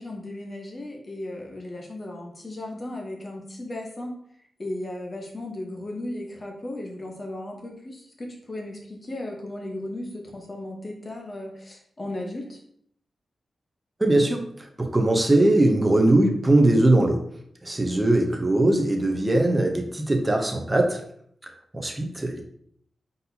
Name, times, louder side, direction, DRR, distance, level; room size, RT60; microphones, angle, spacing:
voice 1, 0.0-4.1 4.6-12.6, left 1 dB, 30° left, 1 dB, 0.9 m, -36 dB
voice 2, 14.0-14.5 14.8-17.2 17.6-21.0 21.7-22.4, right 1 dB, 15° right, 2 dB, 0.6 m, -20 dB
4.1 x 4.0 x 2.7 m, 0.67 s
wide cardioid pair, 150°, 0 cm